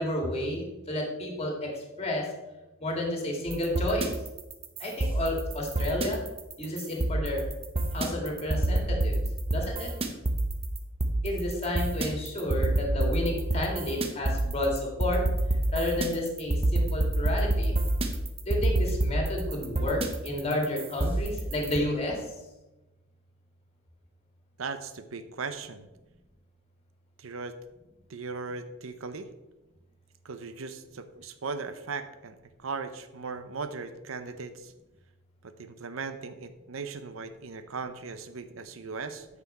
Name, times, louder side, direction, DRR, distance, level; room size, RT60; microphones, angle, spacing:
voice 1, 0.0-2.3 2.8-4.1 4.8-6.2 6.6-7.4 7.9-9.2 9.5-9.9 11.2-15.2 15.7-17.7 18.4-22.3, left 1 dB, 30° left, 1 dB, 2.1 m, -31 dB
sound 1, 3.5-21.8, right 1 dB, 30° right, 0.8 m, -28 dB
voice 2, 24.6-25.9 27.2-27.5 28.1-29.3 30.2-32.4 32.6-34.7 35.4-39.3, right 4 dB, 80° right, 10 dB, 0.7 m, -38 dB
9.4 x 6.1 x 4.3 m, 1.0 s
head